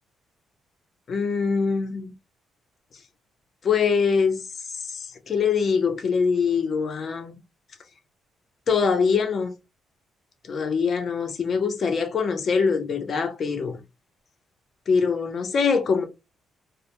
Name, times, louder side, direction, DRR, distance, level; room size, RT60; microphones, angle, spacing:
voice 1, 1.1-2.1 3.6-7.3 8.7-9.5 10.4-13.8 14.9-16.0, left 5 dB, 50° left, 0.7 m, -23 dB
2.2 x 2.1 x 2.9 m
cardioid pair, 90°, 0 cm